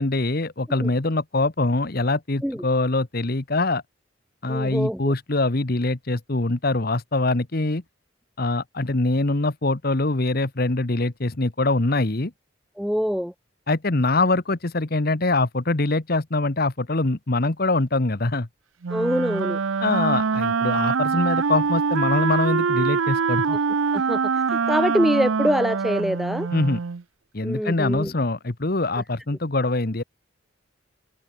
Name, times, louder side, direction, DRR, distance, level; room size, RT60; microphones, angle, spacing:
voice 1, 0.0-3.8 4.4-7.8 8.4-12.3 13.7-18.5 19.8-23.6 26.5-26.8 27.3-30.0, left 2 dB, 50° left, 1.2 m, -23 dB
voice 2, 4.5-5.1 12.8-13.3 18.9-19.6 23.5-23.6 23.9-24.2 24.5-26.5 27.4-28.1, equal, ahead, 0.4 m, -24 dB
Wind instrument woodwind instrument, 18.8-27.0, right 5 dB, 80° right, 0.6 m, -24 dB
head